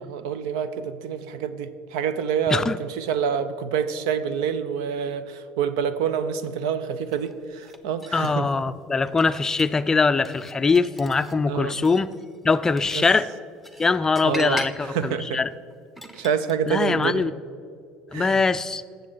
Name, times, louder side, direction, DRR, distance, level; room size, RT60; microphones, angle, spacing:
voice 1, 0.0-8.5 11.5-11.8 12.9-13.0 14.2-15.4 16.1-17.3 18.1-18.4, right 7 dB, 90° right, 12 dB, 0.6 m, -27 dB
sound 1, 7.1-8.5 9.0-9.8 10.3-11.3 11.7-16.5, equal, 5° right, 0.8 m, -41 dB
voice 2, 8.1-12.1 12.4-13.3 13.8-15.5 16.7-17.3 18.1-18.8, left 4 dB, 20° left, 13 dB, 0.4 m, -22 dB
17.5 x 6.9 x 3.9 m, 2.3 s
supercardioid pair, 110°, 3 cm